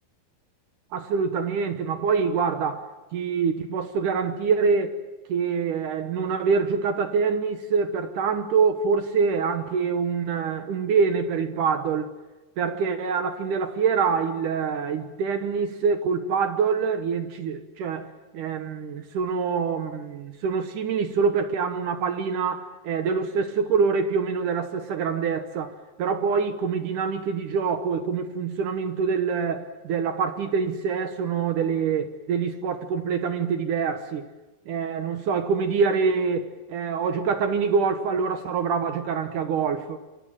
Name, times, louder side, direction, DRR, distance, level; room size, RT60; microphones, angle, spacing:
voice 1, 0.9-5.0 5.3-12.1 12.6-25.7 26.0-34.3 34.7-40.0, right 5 dB, 65° right, 2.3 m, -25 dB
27.0 x 25.0 x 7.5 m
omnidirectional pair, 4.7 m